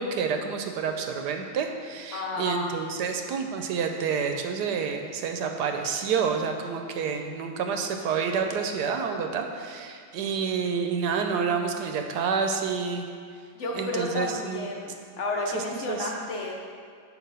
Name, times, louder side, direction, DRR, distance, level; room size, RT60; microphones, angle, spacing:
voice 1, 0.0-13.1 13.7-14.7 15.5-16.1, right 6 dB, 75° right, 4 dB, 1.1 m, -29 dB
voice 2, 2.1-2.7 13.6-14.9 15.2-16.6, left 2 dB, 55° left, -1 dB, 0.9 m, -31 dB
6.0 x 4.8 x 5.5 m, 2.2 s
omnidirectional pair, 1.9 m